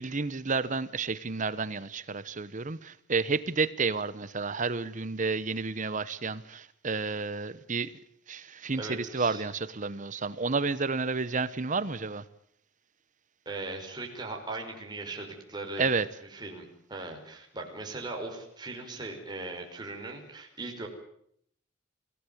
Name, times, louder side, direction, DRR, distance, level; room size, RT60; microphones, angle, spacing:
voice 1, 0.0-7.9 8.3-12.2 15.8-16.1, right 4 dB, 40° right, 16 dB, 1.0 m, -31 dB
voice 2, 8.8-9.4 13.5-15.9 16.3-20.9, right 2 dB, 20° right, 1 dB, 5.3 m, -39 dB
27.0 x 17.0 x 9.4 m, 0.69 s
head